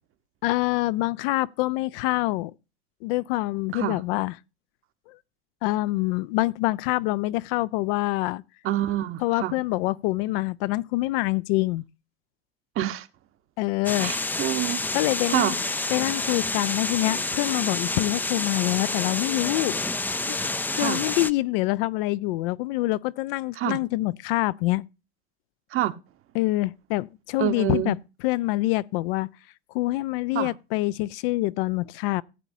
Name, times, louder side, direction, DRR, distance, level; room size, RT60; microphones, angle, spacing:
voice 1, 0.4-2.5 3.0-4.3 5.1-5.2 5.6-8.4 9.2-11.8 13.6-14.1 14.9-15.5 15.9-19.8 20.3-20.4 20.8-24.8 26.3-28.0 28.2-29.3 29.7-32.2, left 19 dB, 60° left, 0.5 m, -25 dB
voice 2, 8.6-9.5 12.8-13.1 14.0-14.8 15.3-15.6 20.8-21.0 23.6-23.8 25.7-25.9 27.4-28.0 30.3-30.5, right 13 dB, 40° right, 1.0 m, -27 dB
sound 1, 13.8-21.3, left 2 dB, 5° left, 0.4 m, -28 dB
15.0 x 8.0 x 2.6 m
hypercardioid pair, 90°, 32 cm